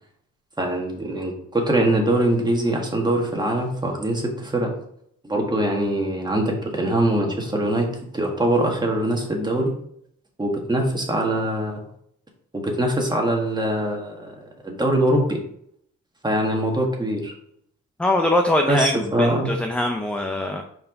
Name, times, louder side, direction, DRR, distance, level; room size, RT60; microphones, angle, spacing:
voice 1, 0.6-4.7 5.2-7.9 8.1-9.7 10.4-11.8 12.5-15.4 16.2-17.3 18.7-19.5, right 1 dB, 15° right, 1 dB, 1.7 m, -23 dB
voice 2, 18.0-20.6, left 1 dB, 5° left, 4 dB, 0.6 m, -22 dB
5.4 x 4.7 x 3.8 m, 0.70 s
cardioid pair, 90°, 30 cm